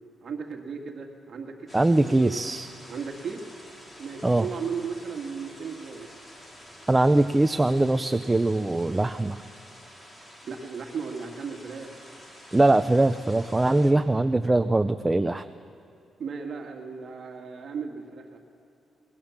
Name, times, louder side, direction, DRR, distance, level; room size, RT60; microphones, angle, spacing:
voice 1, 0.2-1.7 2.0-2.4 2.9-3.5 4.0-6.1 10.4-11.9 16.2-18.4, right 5 dB, 45° right, 2 dB, 2.3 m, -35 dB
sound 1, 1.7-13.9, equal, 15° left, 2.9 m, -49 dB
voice 2, 1.7-2.7 4.2-4.5 6.9-9.4 12.5-15.5, right 2 dB, 10° right, 9 dB, 0.5 m, -22 dB
27.0 x 20.5 x 7.3 m, 2.8 s
wide cardioid pair, 165°, 0 cm